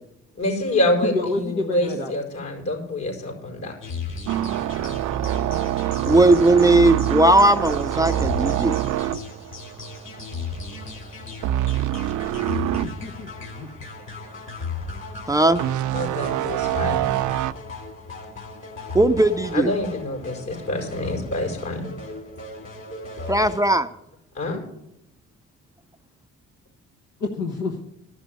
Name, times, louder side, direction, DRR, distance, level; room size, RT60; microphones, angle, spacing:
voice 1, 0.3-3.7 15.9-17.0 19.5-21.9 24.3-24.6, left 1 dB, 65° left, 1 dB, 5.1 m, -26 dB
voice 2, 1.0-2.1 12.8-13.3 13.5-13.7 27.2-27.8, left 3 dB, 90° left, 1 dB, 1.3 m, -28 dB
sound 1, 3.8-23.6, left 4 dB, 40° left, 2.8 m, -36 dB
sound 2, 4.3-10.4 10.6-10.9 11.4-12.9 13.4-13.5 15.6-17.5, right 12 dB, 80° right, 0.5 m, -25 dB
voice 3, 6.1-8.7 15.3-15.6 18.9-19.7 23.3-23.9, right 2 dB, 10° right, 8 dB, 0.4 m, -17 dB
13.0 x 6.2 x 9.2 m, 0.83 s
cardioid pair, 90°, 30 cm